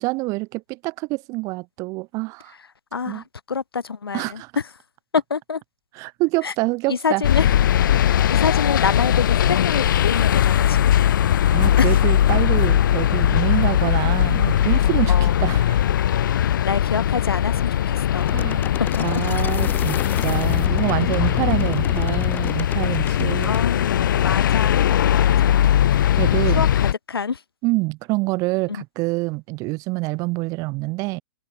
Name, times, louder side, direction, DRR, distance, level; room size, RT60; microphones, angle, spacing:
voice 1, 0.0-2.5 3.1-3.2 4.1-4.5 5.9-7.2 11.5-15.8 18.3-18.6 19.0-23.6 26.2-26.6 27.6-31.2, right 24 dB, 25° right, 0.5 m, -26 dB
voice 2, 2.9-4.6 5.1-5.6 6.4-6.5 6.9-7.4 8.3-11.0 11.8-11.9 15.1-15.6 16.6-18.4 18.9-19.2 21.4-21.8 23.4-25.8 26.2-27.4 28.7-28.8, left 5 dB, 70° left, 3.1 m, -27 dB
sound 1, 7.2-26.9, left 11 dB, 55° left, 1.2 m, -19 dB
sound 2, 18.2-23.6, left 8 dB, 15° left, 0.7 m, -32 dB
figure-of-eight pair, 110°, 13 cm